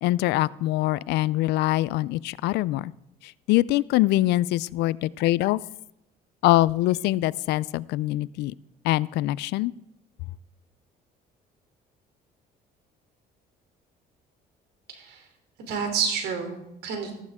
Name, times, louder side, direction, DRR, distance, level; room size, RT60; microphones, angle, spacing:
voice 1, 0.0-2.9 3.2-5.6 6.4-8.5 8.8-9.7, left 16 dB, 85° left, 21 dB, 0.4 m, -24 dB
voice 2, 14.9-15.3 15.6-17.1, right 6 dB, 75° right, 5 dB, 3.3 m, -29 dB
14.5 x 14.0 x 3.6 m, 0.83 s
cardioid pair, 110°, 17 cm